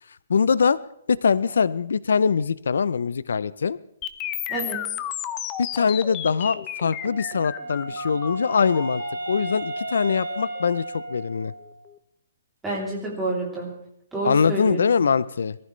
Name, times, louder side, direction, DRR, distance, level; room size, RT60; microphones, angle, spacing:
voice 1, 0.3-0.8 1.1-3.8 5.6-11.5 14.2-15.6, left 6 dB, 90° left, 19 dB, 0.5 m, -22 dB
sound 1, 4.0-12.0, left 11 dB, 15° left, 0.6 m, -34 dB
voice 2, 4.5-4.8 12.6-13.7 14.1-14.8, right 2 dB, 5° right, -6 dB, 3.1 m, -28 dB
Wind instrument woodwind instrument, 7.0-11.8, right 2 dB, 50° right, 6.4 m, -34 dB
22.5 x 14.5 x 3.2 m, 0.73 s
hypercardioid pair, 180°, 0 cm